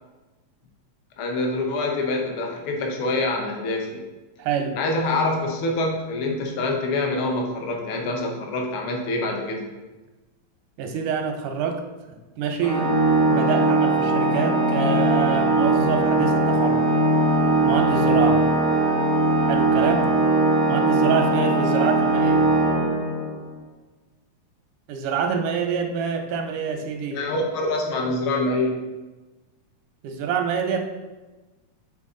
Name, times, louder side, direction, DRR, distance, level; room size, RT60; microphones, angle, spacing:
voice 1, 1.2-4.0 4.7-9.6 27.1-28.8, left 2 dB, 70° left, 1 dB, 1.3 m, -25 dB
voice 2, 4.4-4.8 10.8-11.8 12.4-13.0 13.3-16.8 17.6-18.4 19.5-20.1 20.7-22.5 24.9-27.2 30.0-30.8, right 6 dB, 90° right, 5 dB, 2.2 m, -26 dB
Organ, 12.6-23.4, right 2 dB, 30° left, 0.6 m, -20 dB
6.8 x 4.0 x 3.7 m, 1.2 s
omnidirectional pair, 3.5 m